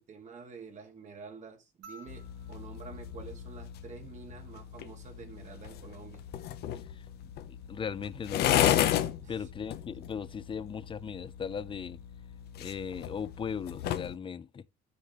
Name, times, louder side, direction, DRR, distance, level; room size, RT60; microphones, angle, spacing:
voice 1, 0.0-6.2 9.2-9.5, right 5 dB, 45° right, 2.2 m, -48 dB
sound 1, 1.8-4.4 6.0-6.1, right 1 dB, 85° right, 2.5 m, -56 dB
sound 2, 2.1-14.2, left 11 dB, 75° left, 0.9 m, -34 dB
voice 2, 6.9-8.7 9.3-12.0 12.6-14.6, left 7 dB, 30° left, 0.6 m, -38 dB
13.0 x 6.6 x 3.1 m
cardioid pair, 110°, 17 cm